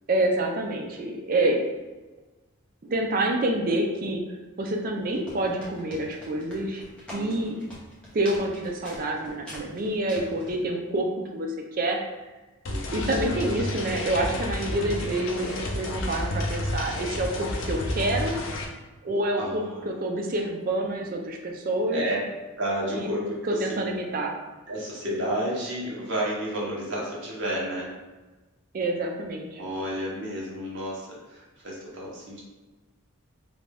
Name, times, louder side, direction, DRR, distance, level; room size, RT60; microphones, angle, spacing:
voice 1, 0.1-1.7 2.8-4.2 4.6-6.8 7.1-7.6 8.1-12.0 12.9-18.4 19.0-22.0 22.9-23.1 23.5-24.3 28.7-29.6, right 1 dB, 40° right, 2 dB, 0.3 m, -27 dB
sound 1, 5.0-10.6, equal, 5° left, 0.6 m, -44 dB
voice 2, 7.1-7.6 12.7-13.2 19.4-20.0 21.9-22.2 22.6-23.9 24.7-27.9 29.6-32.4, right 1 dB, 55° right, -4 dB, 0.8 m, -31 dB
sound 2, 12.7-18.7, left 1 dB, 60° left, 0.4 m, -31 dB
2.6 x 2.2 x 3.3 m, 1.2 s
head